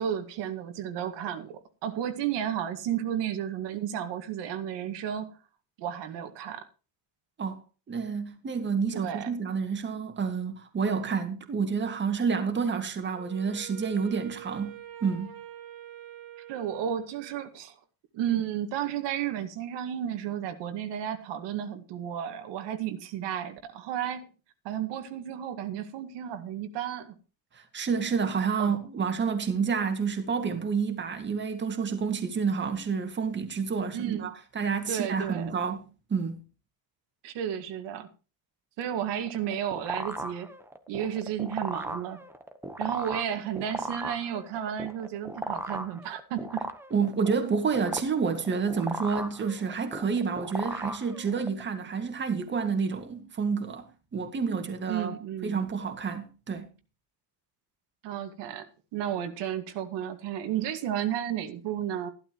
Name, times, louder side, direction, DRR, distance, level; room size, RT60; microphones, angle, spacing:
voice 1, 0.0-5.4 5.8-6.6 8.9-9.3 16.5-17.8 18.1-24.3 24.6-27.2 28.6-28.8 33.9-34.3 34.9-35.5 37.2-38.1 38.8-40.5 40.9-42.2 42.8-46.7 54.9-55.7 58.0-62.1, right 10 dB, 75° right, 2.1 m, -33 dB
voice 2, 7.9-15.4 27.5-36.4 46.9-53.9 54.1-55.1 55.4-56.7, right 5 dB, 25° right, 2.0 m, -29 dB
Wind instrument woodwind instrument, 13.1-17.5, right 12 dB, 55° right, 2.8 m, -46 dB
sound 1, 39.2-51.6, right 1 dB, 5° right, 1.1 m, -37 dB
14.5 x 12.5 x 3.1 m
cardioid pair, 155°, 42 cm